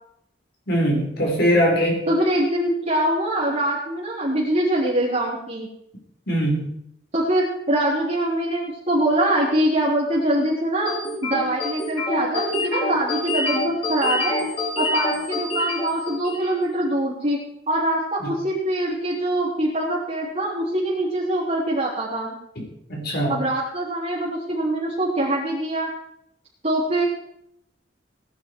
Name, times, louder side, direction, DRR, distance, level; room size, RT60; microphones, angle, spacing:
voice 1, 0.7-2.1 6.3-6.7 18.2-18.3 22.9-23.4, equal, 60° left, -1 dB, 4.8 m, -21 dB
voice 2, 2.1-5.7 7.1-10.9 11.2-14.4 14.8-22.4 23.3-25.9 26.6-27.0, right 1 dB, 40° right, -7 dB, 3.6 m, -23 dB
sound 1, 10.9-16.6, left 2 dB, 35° left, 4.6 m, -27 dB
19.5 x 11.0 x 4.8 m, 0.76 s
head